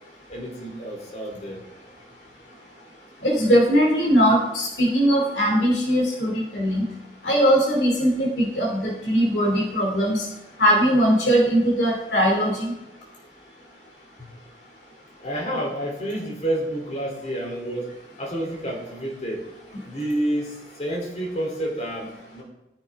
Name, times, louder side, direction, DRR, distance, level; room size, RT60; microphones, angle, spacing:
voice 1, 0.3-1.6 15.2-17.9 18.2-19.5 19.8-22.4, right 1 dB, 40° left, -1 dB, 3.4 m, -29 dB
voice 2, 3.2-6.9 7.2-10.2 10.6-12.7, equal, 70° left, -2 dB, 2.8 m, -20 dB
17.5 x 10.0 x 3.7 m, 0.95 s
head